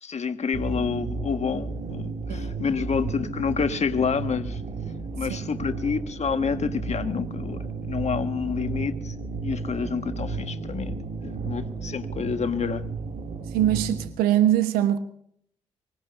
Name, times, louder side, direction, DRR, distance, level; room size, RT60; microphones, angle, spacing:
voice 1, 0.0-4.6 5.1-9.2 9.4-10.9 11.2-12.9, left 6 dB, 45° left, 1.5 m, -28 dB
sound 1, 0.5-14.1, right 4 dB, 55° right, 2.6 m, -33 dB
voice 2, 13.5-15.0, right 12 dB, 80° right, 1.2 m, -22 dB
24.5 x 19.5 x 2.6 m
hypercardioid pair, 40°, 15 cm